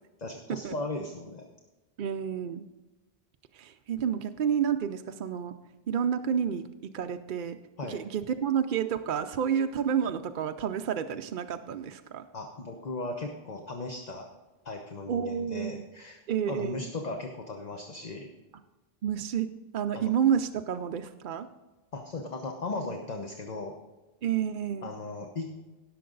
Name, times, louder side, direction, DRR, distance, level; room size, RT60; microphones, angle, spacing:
voice 1, 0.2-1.5 7.8-8.0 12.3-14.3 14.6-16.2 16.5-18.3 19.9-20.1 21.9-23.7 24.8-25.5, left 2 dB, 45° left, 3 dB, 1.0 m, -37 dB
voice 2, 2.0-2.7 3.5-5.5 5.9-7.6 7.8-12.2 15.1-15.8 16.3-16.9 19.0-21.5 24.2-24.9, right 8 dB, 60° right, 7 dB, 0.6 m, -30 dB
17.0 x 6.7 x 3.9 m, 1.1 s
omnidirectional pair, 1.1 m